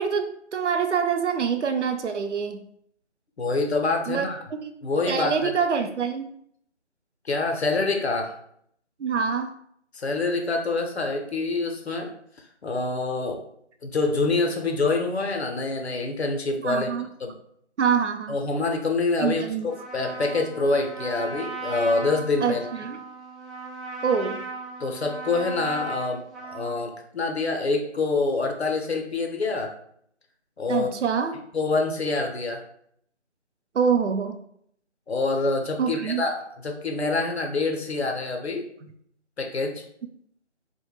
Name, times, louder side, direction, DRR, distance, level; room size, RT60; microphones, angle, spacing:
voice 1, 0.0-2.6 4.1-4.3 4.6-4.7 5.1-6.3 9.0-9.5 16.6-17.1 17.8-18.4 19.2-19.7 22.4-23.0 24.0-24.4 30.7-31.4 33.7-34.4 35.8-36.3, right 6 dB, 80° right, 7 dB, 0.5 m, -25 dB
voice 2, 3.4-4.4 4.8-5.5 7.2-8.4 9.9-12.2 12.6-13.4 13.8-16.9 17.2-17.4 18.3-19.4 19.9-22.6 24.8-29.7 30.6-30.9 31.5-32.6 35.1-38.7 39.4-39.8, left 3 dB, 65° left, 3 dB, 0.6 m, -26 dB
Trumpet, 19.7-26.8, right 3 dB, ahead, 0.3 m, -37 dB
2.1 x 2.1 x 3.1 m, 0.68 s
figure-of-eight pair, 165°, 35 cm